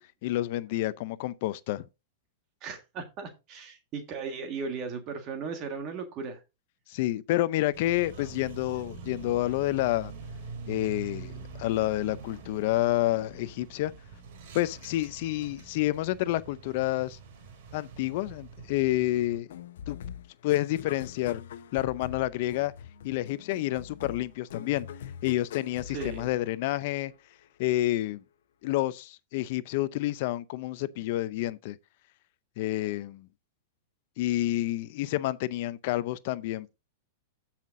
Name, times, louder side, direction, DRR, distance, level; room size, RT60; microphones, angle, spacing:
voice 1, 0.2-1.8 6.9-10.1 10.7-13.9 14.5-17.2 17.7-19.5 19.9-20.0 20.4-21.4 21.7-22.7 23.0-24.9 25.2-27.1 27.6-28.2 28.6-31.8 32.6-33.3 34.2-36.7, left 15 dB, 55° left, 0.5 m, -29 dB
voice 2, 2.6-6.4 25.9-26.3, right 5 dB, 35° right, 1.6 m, -37 dB
sound 1, 7.7-19.4, right 5 dB, 60° right, 3.0 m, -45 dB
sound 2, 19.5-27.1, left 8 dB, 80° left, 0.9 m, -43 dB
15.0 x 5.8 x 2.6 m
supercardioid pair, 145°, 0 cm